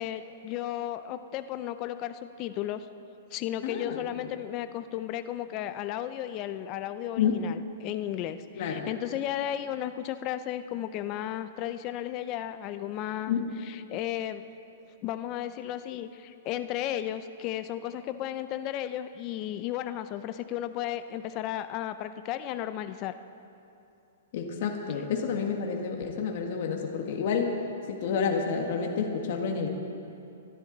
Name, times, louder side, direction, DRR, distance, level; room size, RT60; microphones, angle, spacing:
voice 1, 0.0-2.9 3.3-14.4 15.0-23.1, left 12 dB, 30° left, 11 dB, 0.5 m, -34 dB
voice 2, 3.6-4.0 7.2-7.4 8.6-8.9 13.3-13.5 24.3-27.5 27.9-29.7, left 6 dB, 50° left, 2 dB, 1.6 m, -29 dB
24.5 x 11.5 x 4.0 m, 2.7 s
hypercardioid pair, 160°, 0 cm